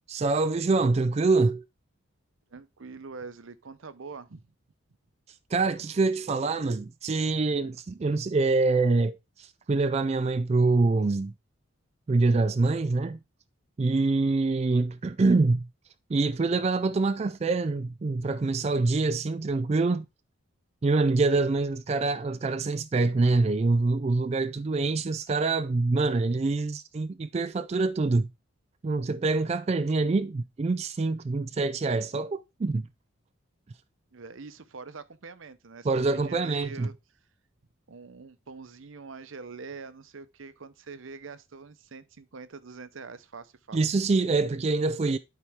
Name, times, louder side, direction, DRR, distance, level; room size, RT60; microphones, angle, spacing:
voice 1, 0.1-1.6 5.5-11.3 12.1-13.2 13.8-15.7 16.1-20.0 20.8-28.3 28.8-32.8 35.8-36.9 43.7-45.2, right 3 dB, 30° right, 0.3 m, -25 dB
voice 2, 2.5-4.4 34.1-36.9 37.9-43.8, right 4 dB, 70° right, 0.7 m, -44 dB
11.5 x 4.6 x 3.5 m
head